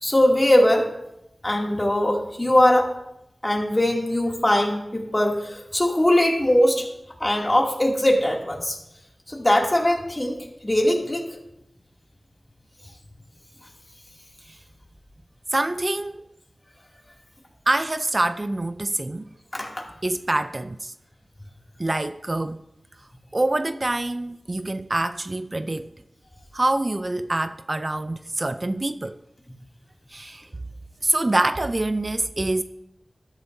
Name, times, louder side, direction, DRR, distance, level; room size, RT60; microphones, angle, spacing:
voice 1, 0.0-0.8 1.4-2.9 3.4-6.8 7.2-8.8 9.3-10.4 10.6-11.2 19.5-19.9, left 1 dB, 30° left, 2.6 m, -20 dB
voice 2, 15.5-16.2 17.7-19.2 20.0-20.9 21.8-22.6 23.3-25.9 26.5-29.2 30.1-30.5 31.0-32.6, right 2 dB, 45° right, 0.5 m, -25 dB
13.0 x 12.5 x 2.7 m
cardioid pair, 40°, 0 cm